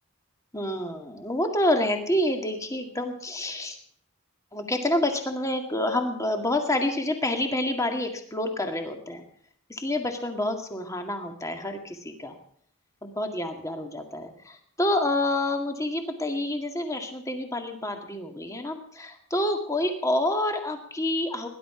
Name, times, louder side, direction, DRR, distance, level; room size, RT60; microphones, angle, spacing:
voice 1, 0.5-3.8 4.5-9.2 9.7-12.3 13.0-21.5, left 1 dB, 15° left, 5 dB, 2.0 m, -28 dB
19.0 x 11.5 x 5.0 m, 0.63 s
head